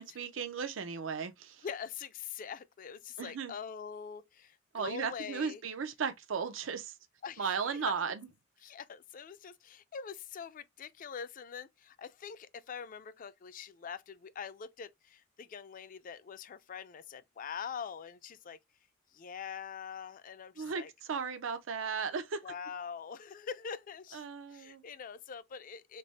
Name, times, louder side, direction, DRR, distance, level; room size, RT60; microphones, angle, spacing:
voice 1, 0.0-1.6 3.2-3.5 4.7-6.9 7.4-8.1 20.6-20.8 21.1-22.4 24.1-24.8, right 6 dB, 90° right, 0.5 m, -35 dB
voice 2, 1.6-5.6 7.2-7.9 8.6-18.6 19.1-20.9 22.4-24.2 24.5-26.0, left 7 dB, 45° left, 0.4 m, -44 dB
3.3 x 2.0 x 4.0 m
head